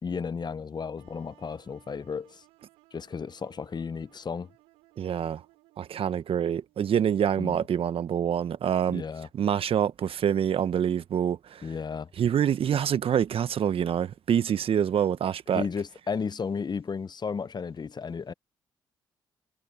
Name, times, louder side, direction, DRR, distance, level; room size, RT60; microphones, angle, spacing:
voice 1, 0.0-2.4 2.9-4.5 7.4-7.6 8.9-9.3 11.6-12.1 15.5-18.3, left 5 dB, 40° left, 1.0 m, -33 dB
sound 1, 1.0-6.8, right 21 dB, 85° right, 6.6 m, -62 dB
voice 2, 5.0-5.4 5.8-9.0 9.3-11.7 12.2-15.6, right 9 dB, 60° right, 1.3 m, -26 dB
hypercardioid pair, 45°, 11 cm